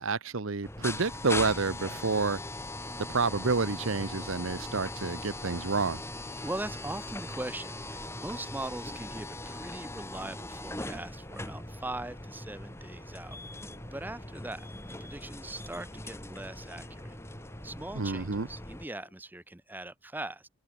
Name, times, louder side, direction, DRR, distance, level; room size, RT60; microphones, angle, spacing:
voice 1, 0.0-2.4 3.1-6.0 18.0-18.5, right 4 dB, 65° right, 0.9 m, -29 dB
sound 1, 0.6-18.9, left 2 dB, 10° left, 3.2 m, -40 dB
voice 2, 6.4-13.4 13.9-17.2 17.6-20.5, right 1 dB, 10° right, 0.6 m, -40 dB
Brass instrument, 10.7-19.2, left 2 dB, 35° left, 3.6 m, -59 dB
open air
head